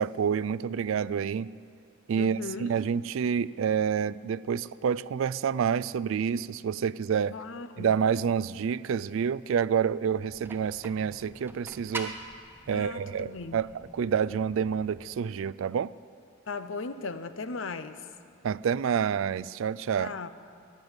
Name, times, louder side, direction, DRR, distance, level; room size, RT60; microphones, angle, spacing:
voice 1, 0.0-1.5 2.1-7.4 7.8-12.1 12.7-13.7 13.9-15.9 18.4-20.1, right 7 dB, 70° right, 20 dB, 0.3 m, -28 dB
voice 2, 2.2-2.7 7.3-7.9 12.7-13.6 16.5-18.1 20.0-20.3, left 4 dB, 65° left, 11 dB, 0.7 m, -37 dB
sound 1, 10.1-15.1, right 2 dB, 10° right, 0.8 m, -44 dB
16.0 x 10.5 x 8.0 m, 2.5 s
head